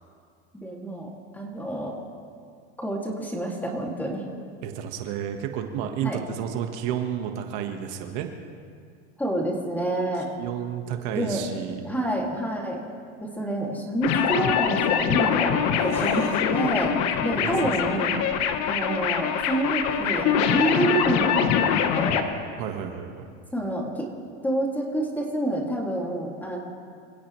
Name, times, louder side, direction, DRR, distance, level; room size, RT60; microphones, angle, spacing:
voice 1, 0.6-2.0 2.8-4.3 6.0-6.2 9.2-10.3 11.1-11.4 11.8-12.8 13.2-17.0 17.2-18.3 18.7-22.3 23.5-24.1 24.4-26.6, right 1 dB, 5° left, -1 dB, 2.4 m, -28 dB
voice 2, 4.6-8.3 10.4-11.8 15.9-16.4 17.3-17.7 22.6-23.3, right 9 dB, 60° right, 5 dB, 1.5 m, -31 dB
sound 1, 14.0-22.2, left 8 dB, 50° left, 1.3 m, -24 dB
27.0 x 16.0 x 3.2 m, 2.2 s
supercardioid pair, 140°, 34 cm